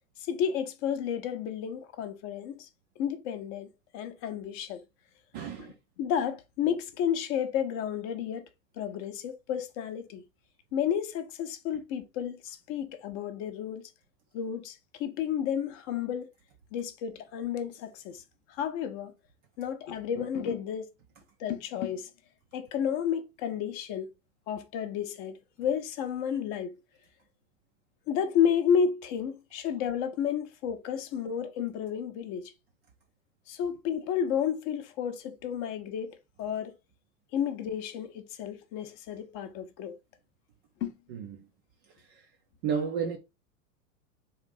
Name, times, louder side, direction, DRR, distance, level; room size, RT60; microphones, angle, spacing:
voice 1, 0.3-2.7 3.0-3.7 3.9-4.8 5.6-8.4 8.8-10.3 10.7-13.9 14.3-16.3 16.7-18.2 18.5-19.1 19.6-20.9 21.4-22.1 22.5-24.1 24.5-26.7 28.1-32.5 33.5-36.7 37.3-40.0 40.8-40.9, left 8 dB, 35° left, 0.6 m, -31 dB
voice 2, 5.3-5.7 41.1-41.4 42.1-42.2 42.6-43.2, right 6 dB, 25° right, 0.3 m, -32 dB
3.7 x 2.6 x 3.8 m
figure-of-eight pair, 90°, 40 cm